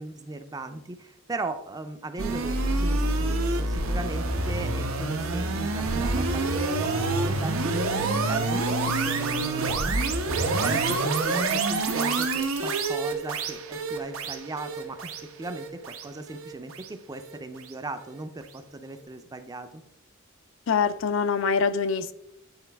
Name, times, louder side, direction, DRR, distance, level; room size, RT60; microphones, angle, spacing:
voice 1, 0.0-8.6 8.9-19.8, right 2 dB, 15° right, 0.4 m, -38 dB
sound 1, 2.2-17.4, right 3 dB, 75° right, 0.9 m, -27 dB
voice 2, 20.7-22.1, left 5 dB, 60° left, 0.4 m, -24 dB
9.7 x 4.0 x 3.4 m
head